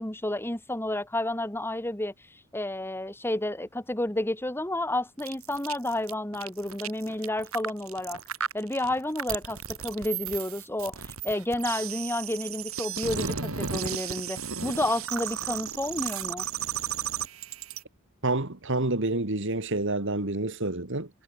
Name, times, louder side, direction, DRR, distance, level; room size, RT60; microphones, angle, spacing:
voice 1, 0.0-2.1 2.5-8.2 8.5-16.4, left 1 dB, 10° left, 2.1 m, -31 dB
sound 1, 5.2-17.8, right 7 dB, 80° right, 3.5 m, -34 dB
voice 2, 18.2-21.1, right 2 dB, 60° right, 2.4 m, -28 dB
head